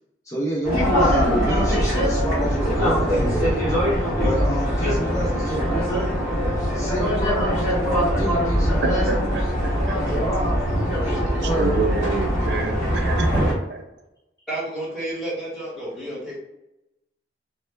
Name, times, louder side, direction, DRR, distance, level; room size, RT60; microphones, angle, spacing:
voice 1, 0.2-3.6 3.9-6.2 6.7-9.3 10.1-10.6 11.0-11.8, equal, 20° left, -5 dB, 0.5 m, -29 dB
sound 1, 0.6-13.5, equal, 15° right, 1.3 m, -22 dB
voice 2, 8.8-10.0 11.4-13.3, right 4 dB, 70° right, 3 dB, 0.4 m, -28 dB
voice 3, 14.5-16.4, right 1 dB, ahead, -8 dB, 1.3 m, -29 dB
3.2 x 2.1 x 3.2 m, 0.92 s
head